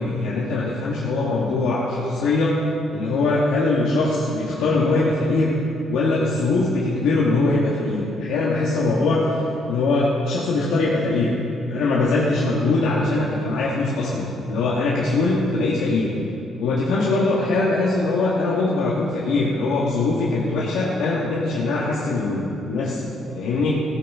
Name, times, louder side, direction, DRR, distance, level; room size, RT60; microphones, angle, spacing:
voice 1, 0.0-2.6 2.9-5.6 5.9-9.3 9.7-11.3 11.7-16.1 16.6-23.7, left 3 dB, 90° left, -6 dB, 1.6 m, -22 dB
15.0 x 12.5 x 3.7 m, 2.7 s
cardioid pair, 90°, 0 cm